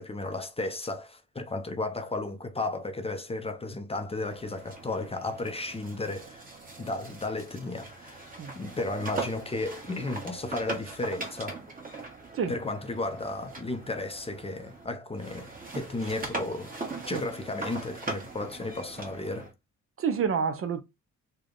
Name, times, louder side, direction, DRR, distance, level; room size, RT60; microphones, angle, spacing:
voice 1, 0.0-6.5 6.8-11.6 12.5-16.7 17.1-19.5, left 2 dB, 20° left, 0.5 m, -34 dB
sound 1, 4.3-14.9 15.2-19.5, right 3 dB, 30° right, 1.2 m, -40 dB
voice 2, 20.0-20.8, right 6 dB, 45° right, 0.6 m, -28 dB
3.3 x 2.1 x 3.8 m
cardioid pair, 90°, 30 cm